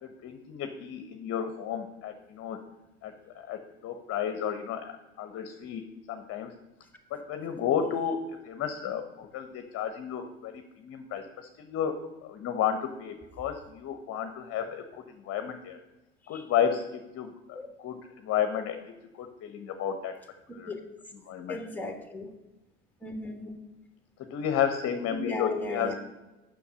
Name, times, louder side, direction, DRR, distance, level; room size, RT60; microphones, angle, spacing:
voice 1, 0.0-2.6 3.0-5.8 6.1-6.5 7.1-8.2 8.4-14.8 15.2-15.8 16.3-16.8 17.1-18.8 19.2-20.2 20.5-20.7 21.2-21.6 24.2-25.9, left 8 dB, 45° left, 8 dB, 0.9 m, -32 dB
voice 2, 21.5-22.3 23.0-23.6 25.1-26.0, left 2 dB, 5° left, 6 dB, 1.5 m, -36 dB
7.0 x 6.1 x 6.2 m, 1.1 s
hypercardioid pair, 85°, 34 cm